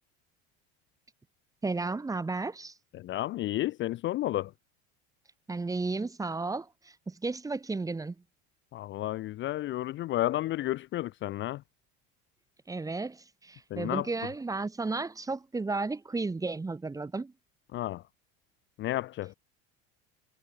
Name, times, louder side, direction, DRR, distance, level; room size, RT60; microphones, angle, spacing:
voice 1, 1.6-2.7 5.5-8.1 12.7-17.3, right 3 dB, 10° right, 1.0 m, -33 dB
voice 2, 3.0-4.5 8.7-11.6 13.7-14.1 17.7-18.0 18.8-19.3, left 15 dB, 40° left, 0.5 m, -31 dB
supercardioid pair, 120°, 31 cm